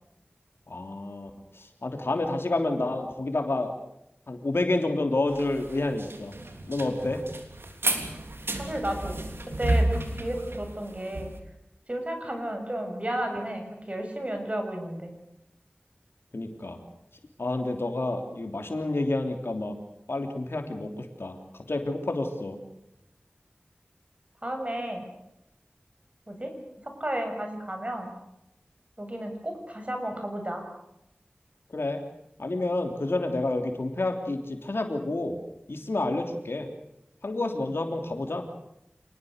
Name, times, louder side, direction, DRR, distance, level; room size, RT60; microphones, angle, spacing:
voice 1, 0.7-3.8 4.3-6.3 6.7-7.2 16.3-16.8 17.4-19.8 20.1-21.4 21.7-22.6 31.7-32.0 32.4-35.4 35.7-36.7 37.2-38.5, left 2 dB, 80° left, 4 dB, 3.3 m, -29 dB
sound 1, 5.3-11.4, right 1 dB, 85° right, 3.3 m, -30 dB
voice 2, 8.6-11.3 11.9-15.1 24.4-25.0 26.3-26.5 26.8-28.1 29.0-30.6, right 1 dB, 35° right, 4 dB, 7.2 m, -33 dB
27.5 x 20.0 x 6.7 m, 0.83 s
wide cardioid pair, 45°, 4 cm